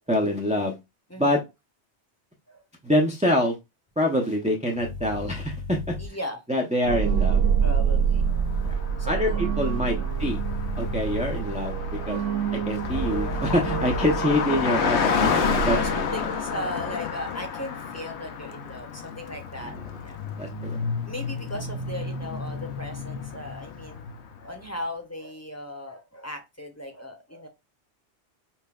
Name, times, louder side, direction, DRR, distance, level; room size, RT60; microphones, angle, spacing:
voice 1, 0.1-0.8 1.2-1.4 2.8-3.5 4.0-5.9 6.5-7.4 8.6-8.8 9.0-9.3 9.6-10.4 10.7-11.7 12.1-12.2 12.5-15.8 19.6-19.7 20.4-20.8, left 1 dB, 10° right, 0 dB, 0.4 m, -25 dB
voice 2, 1.1-1.4 2.5-2.6 6.0-6.4 7.6-8.3 9.0-9.5 9.8-10.1 15.7-20.2 21.0-24.0 24.4-27.5, left 1 dB, 15° left, 3 dB, 0.7 m, -37 dB
sound 1, 4.8-6.1 7.4-8.7 10.1-11.4 12.7-14.1, left 5 dB, 55° left, 0.3 m, -36 dB
sound 2, 6.8-16.5, right 7 dB, 90° right, 0.9 m, -27 dB
Car passing by, 8.4-24.5, left 6 dB, 75° left, 0.9 m, -31 dB
5.5 x 2.2 x 2.3 m, 0.23 s
omnidirectional pair, 1.2 m